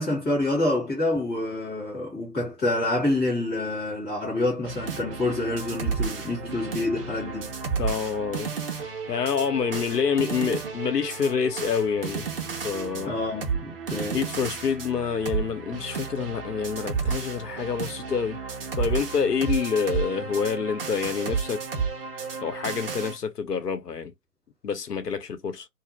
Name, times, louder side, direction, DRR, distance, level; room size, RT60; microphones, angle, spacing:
voice 1, 0.0-7.6 13.0-14.2, left 2 dB, 5° left, 0.6 m, -27 dB
sound 1, 4.6-23.2, right 5 dB, 40° right, 0.6 m, -32 dB
voice 2, 7.8-12.3 12.6-13.2 14.1-18.4 18.8-21.6 22.4-24.1 24.6-25.7, left 6 dB, 80° left, 0.8 m, -27 dB
2.4 x 2.0 x 3.0 m
figure-of-eight pair, 135°, 47 cm